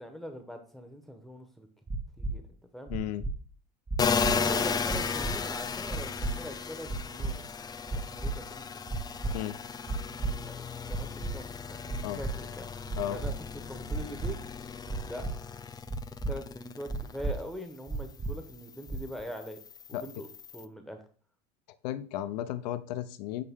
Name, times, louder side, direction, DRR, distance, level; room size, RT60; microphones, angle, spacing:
voice 1, 0.0-1.7 2.2-2.4 2.7-2.9 4.3-7.5 7.9-8.8 9.2-9.4 10.4-12.7 13.1-14.4 15.0-15.2 16.3-19.6 19.9-20.3 20.5-21.0, equal, ahead, 5 dB, 1.0 m, -42 dB
sound 1, 1.9-2.3 2.9-3.3 3.9-4.3 4.9-5.3 5.9-6.3 6.9-7.3 7.9-8.3 8.9-9.3 9.9-10.3 10.9-11.3 11.9-12.3 12.9-13.3 13.9-14.3 14.9-15.3 15.9-16.3 16.9-17.3 17.9-18.3 18.9-19.2, right 3 dB, 20° right, 0.9 m, -32 dB
voice 2, 2.9-3.2 9.3-9.6 12.0-12.2 13.0-13.2 19.9-20.0 21.8-23.4, left 12 dB, 75° left, 13 dB, 0.6 m, -34 dB
sound 2, 4.0-17.4 17.8-20.7, left 5 dB, 20° left, 0.5 m, -35 dB
8.6 x 3.4 x 3.6 m, 0.41 s
hypercardioid pair, 95°, 21 cm